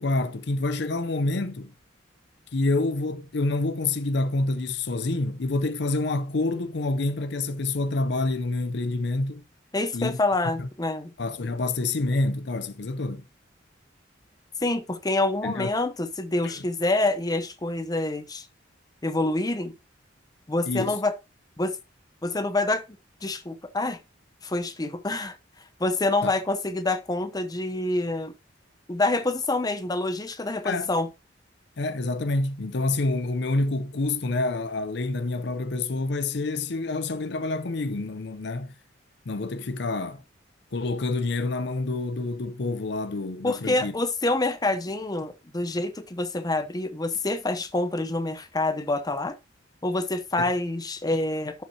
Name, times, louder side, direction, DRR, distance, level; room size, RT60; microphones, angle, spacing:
voice 1, 0.0-1.7 2.5-9.4 9.9-10.2 10.6-10.7 11.2-13.2 15.4-15.7 16.4-16.5 20.7-21.0 26.2-26.3 30.6-30.9 31.8-38.7 39.3-40.2 40.7-43.9 50.4-50.5, left 2 dB, 65° left, 0.6 m, -27 dB
voice 2, 9.7-11.1 14.6-18.5 19.0-19.7 20.5-21.1 21.6-21.8 22.2-22.8 23.2-24.0 24.4-25.4 25.8-28.3 28.9-31.1 43.4-49.4 49.8-51.6, left 2 dB, 20° left, 0.7 m, -27 dB
11.5 x 5.8 x 2.8 m
head